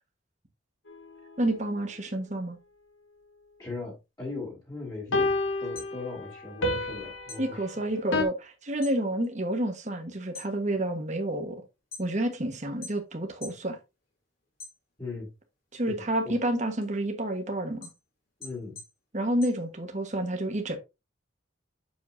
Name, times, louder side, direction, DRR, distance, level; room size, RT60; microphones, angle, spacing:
sound 1, 0.9-1.0 5.1-8.2, left 2 dB, 85° left, 1.4 m, -30 dB
voice 1, 1.4-2.6 7.4-11.6 12.0-13.8 15.7-17.9 19.1-20.8, right 1 dB, 35° right, 1.4 m, -29 dB
voice 2, 3.6-5.3 5.6-7.7 15.0-15.3 16.0-16.4 18.4-18.8, left 3 dB, 20° left, 2.8 m, -38 dB
sound 2, 5.6-6.9 7.2-9.0 9.4-9.8 10.2-12.4 12.8-13.7 14.0-15.2 15.7-20.2, left 4 dB, 45° left, 3.7 m, -47 dB
7.4 x 7.1 x 2.7 m
head